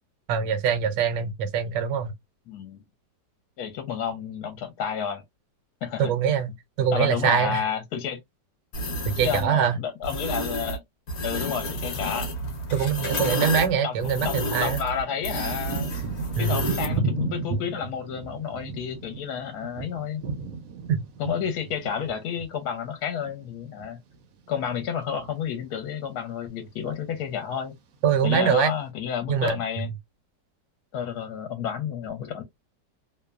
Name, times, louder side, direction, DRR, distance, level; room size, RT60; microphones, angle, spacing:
voice 1, 0.3-2.1 6.0-7.6 9.1-9.8 12.7-14.8 16.4-16.6 20.9-21.0 28.0-28.7 29.3-29.6, right 7 dB, 85° right, 1.2 m, -23 dB
voice 2, 2.5-2.8 3.6-5.2 5.8-6.1 6.9-8.2 9.2-10.8 11.2-12.3 13.8-15.9 16.4-20.2 21.2-24.0 24.5-27.7 28.2-29.9 30.9-32.4, left 8 dB, 70° left, 1.1 m, -31 dB
sound 1, 8.7-9.5 10.0-10.8 11.1-17.0, left 1 dB, 55° left, 0.8 m, -30 dB
Thunder / Rain, 14.0-14.1 14.7-24.3 24.5-25.4 26.0-26.3 26.6-27.4 28.0-28.1, right 4 dB, 70° right, 0.8 m, -34 dB
2.9 x 2.1 x 2.2 m
omnidirectional pair, 1.8 m